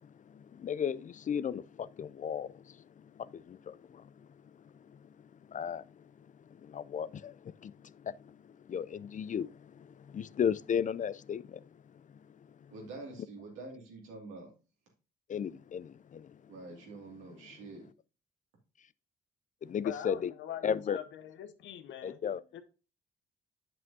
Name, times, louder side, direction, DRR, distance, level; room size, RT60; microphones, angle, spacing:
voice 1, 0.3-2.8 3.2-4.1 5.5-5.8 6.6-7.7 8.0-11.6 15.3-16.4 19.6-20.3 20.6-21.0 22.0-22.4, left 8 dB, 40° left, 0.4 m, -35 dB
voice 2, 12.7-14.5 16.5-17.9, right 3 dB, 85° right, 2.4 m, -46 dB
voice 3, 19.8-22.2 22.5-22.6, left 10 dB, 70° left, 0.8 m, -43 dB
7.7 x 7.3 x 2.7 m
hypercardioid pair, 45°, 20 cm